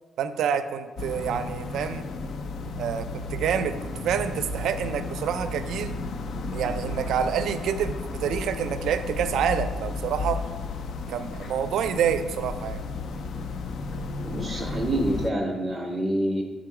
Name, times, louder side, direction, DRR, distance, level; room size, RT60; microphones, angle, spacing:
voice 1, 0.2-2.1 2.8-6.0 6.5-10.4 11.1-12.8, right 8 dB, 75° right, 10 dB, 0.4 m, -27 dB
sound 1, 1.0-15.3, left 3 dB, 55° left, 0.3 m, -33 dB
voice 2, 14.2-16.4, right 1 dB, 5° right, 0 dB, 0.6 m, -27 dB
5.9 x 3.7 x 4.7 m, 1.4 s
cardioid pair, 135°, 0 cm